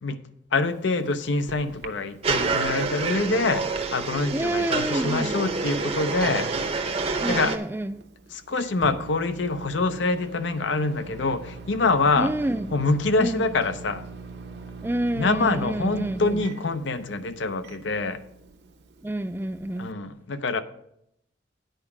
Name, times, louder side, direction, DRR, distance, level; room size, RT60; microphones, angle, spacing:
voice 1, 0.5-6.5 7.3-7.6 8.3-12.3 12.7-14.1 15.1-18.2 19.8-20.6, left 3 dB, 80° left, 0.6 m, -25 dB
Microwave oven, 0.6-19.9, right 4 dB, 60° right, 0.8 m, -44 dB
sound 1, 2.2-7.6, right 4 dB, 30° right, 0.7 m, -27 dB
voice 2, 4.3-5.3 7.2-8.1 12.2-12.7 13.2-13.5 14.8-16.4 19.0-19.9, right 1 dB, 10° right, 0.3 m, -28 dB
9.0 x 4.9 x 7.1 m
head